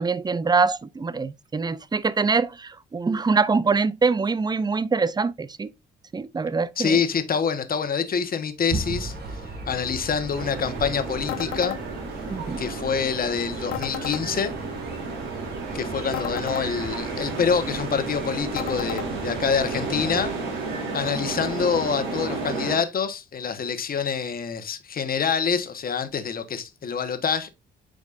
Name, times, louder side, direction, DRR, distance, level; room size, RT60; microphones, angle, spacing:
voice 1, 0.0-5.7 6.1-7.0 12.3-12.6, right 4 dB, 20° right, 0.5 m, -24 dB
voice 2, 6.8-9.1 9.7-11.7 12.6-14.5 15.7-20.3 20.9-27.5, left 6 dB, 45° left, 1.3 m, -26 dB
sound 1, 8.7-20.3, right 3 dB, 55° right, 2.7 m, -37 dB
sound 2, 10.3-22.8, right 3 dB, 80° right, 2.9 m, -32 dB
sound 3, 11.3-11.8 13.7-14.2 16.1-16.7 18.6-19.1, left 14 dB, 80° left, 0.6 m, -32 dB
8.5 x 5.2 x 2.6 m
cardioid pair, 90°, 20 cm